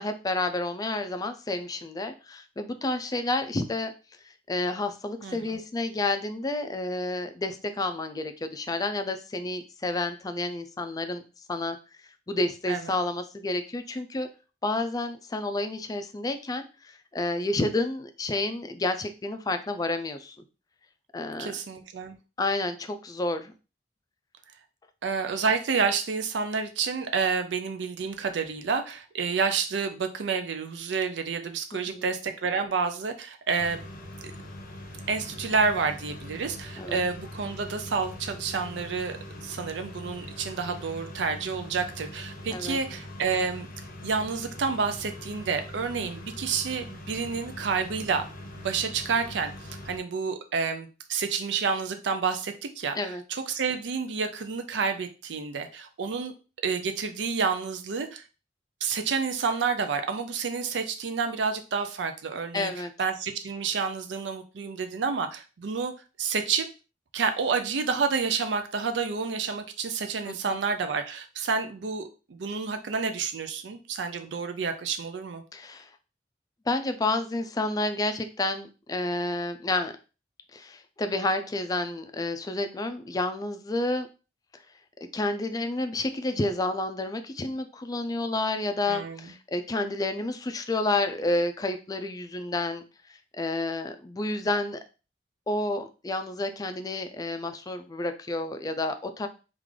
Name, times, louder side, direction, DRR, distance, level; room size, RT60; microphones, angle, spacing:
voice 1, 0.0-3.9 4.5-11.2 11.5-11.8 12.3-14.3 14.6-20.4 21.1-21.5 22.4-23.5 31.7-32.1 36.8-37.0 42.5-42.8 53.0-53.2 62.5-62.9 70.3-70.6 75.5-75.9 76.7-79.9 80.5-84.1 85.1-92.8 93.3-94.8 95.5-99.3, left 2 dB, 20° left, 8 dB, 0.4 m, -30 dB
voice 2, 5.2-5.6 12.7-12.8 21.4-22.2 25.0-33.9 35.1-43.7 44.0-48.2 48.6-56.3 56.6-58.2 58.8-65.9 66.2-66.7 67.1-75.4 88.9-89.3, right 5 dB, 80° right, 7 dB, 0.5 m, -29 dB
sound 1, 33.6-50.0, left 1 dB, 55° left, 0.7 m, -42 dB
3.7 x 2.4 x 3.2 m, 0.32 s
head